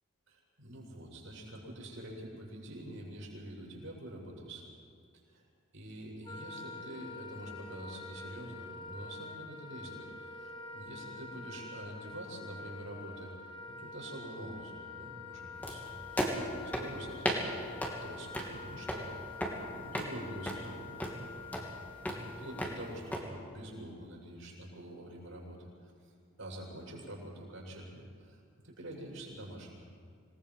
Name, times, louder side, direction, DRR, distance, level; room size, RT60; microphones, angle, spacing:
voice 1, 0.3-4.7 5.1-5.5 5.7-19.2 19.7-21.7 22.1-26.1 26.4-29.8, right 1 dB, 65° right, -3 dB, 7.4 m, -46 dB
Wind instrument woodwind instrument, 6.2-22.8, left 4 dB, 25° left, 1.7 m, -47 dB
sound 1, 15.6-23.2, equal, 10° left, 2.8 m, -37 dB
27.0 x 20.0 x 5.7 m, 2.3 s
head